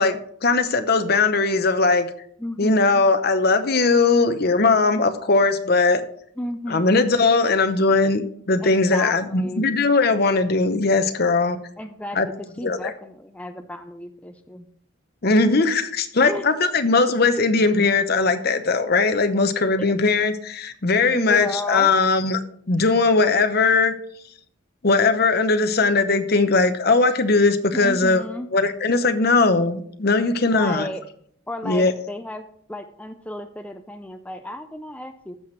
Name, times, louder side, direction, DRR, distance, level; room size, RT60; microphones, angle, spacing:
voice 1, 0.0-2.1 2.6-6.0 6.7-8.2 8.5-11.6 12.2-12.3 12.6-12.9 15.2-22.4 22.7-23.9 24.8-28.2 28.5-30.9 31.6-31.9, left 3 dB, 50° left, 9 dB, 0.8 m, -19 dB
voice 2, 2.4-3.0 6.4-7.1 8.6-9.7 11.8-14.7 16.2-16.4 19.8-19.9 21.1-21.9 27.7-28.5 30.4-31.0 31.5-35.3, left 1 dB, 5° left, 7 dB, 0.4 m, -33 dB
15.0 x 5.8 x 3.2 m, 0.64 s
head